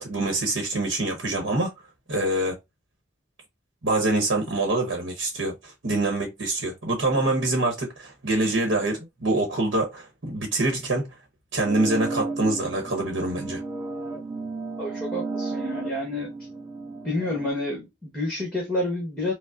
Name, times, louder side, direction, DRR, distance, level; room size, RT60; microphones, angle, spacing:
voice 1, 0.0-1.7 2.1-2.6 3.8-11.1 11.5-13.6, right 2 dB, 70° right, 0.9 m, -25 dB
sound 1, 11.6-17.5, right 3 dB, 15° right, 0.9 m, -34 dB
voice 2, 14.8-16.3 17.0-19.3, left 1 dB, 5° left, 1.2 m, -29 dB
5.0 x 2.0 x 2.5 m
head